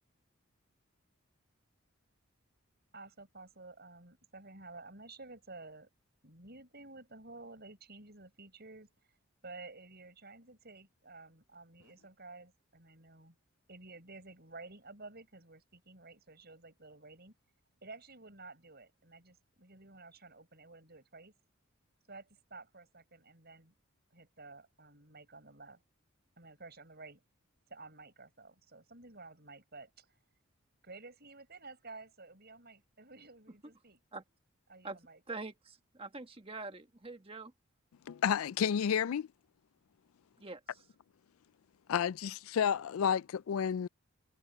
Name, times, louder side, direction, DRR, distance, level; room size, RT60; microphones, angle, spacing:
voice 1, 2.9-5.9 6.2-8.9 9.4-13.4 13.7-17.3 17.8-21.3 22.1-23.7 24.1-25.8 26.4-27.2 27.7-30.2 30.8-34.0 34.7-35.2, right 3 dB, 50° right, 7.0 m, -52 dB
voice 2, 35.3-37.5 40.4-40.6, right 3 dB, 25° right, 1.7 m, -44 dB
voice 3, 38.1-39.3 41.9-43.9, left 8 dB, 75° left, 0.4 m, -31 dB
head